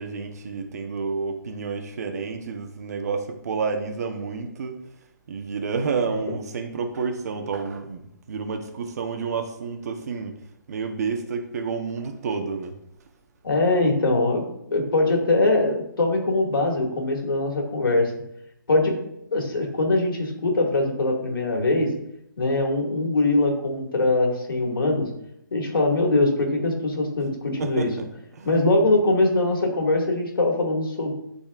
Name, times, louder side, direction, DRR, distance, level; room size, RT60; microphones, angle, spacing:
voice 1, 0.0-4.8 5.3-8.0 8.3-10.4 10.7-12.7 27.6-28.0 28.3-28.5, right 5 dB, 50° right, 5 dB, 1.0 m, -29 dB
voice 2, 13.4-14.4 14.7-18.1 18.7-19.0 19.3-21.9 22.4-25.1 25.5-27.9 28.4-31.1, left 2 dB, 85° left, 1 dB, 2.2 m, -22 dB
12.0 x 4.2 x 2.5 m, 0.79 s
hypercardioid pair, 165°, 11 cm